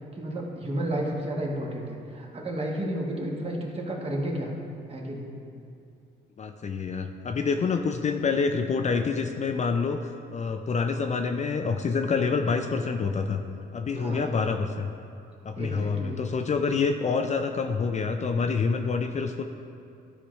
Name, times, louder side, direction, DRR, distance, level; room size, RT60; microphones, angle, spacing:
voice 1, 0.1-4.5 4.9-5.3 14.0-14.3 15.6-16.2, right 1 dB, 30° right, -1 dB, 1.4 m, -32 dB
voice 2, 6.4-13.4 13.7-14.9 15.4-19.4, left 5 dB, 35° left, 5 dB, 0.4 m, -27 dB
12.0 x 4.9 x 3.1 m, 2.6 s
cardioid pair, 90°, 20 cm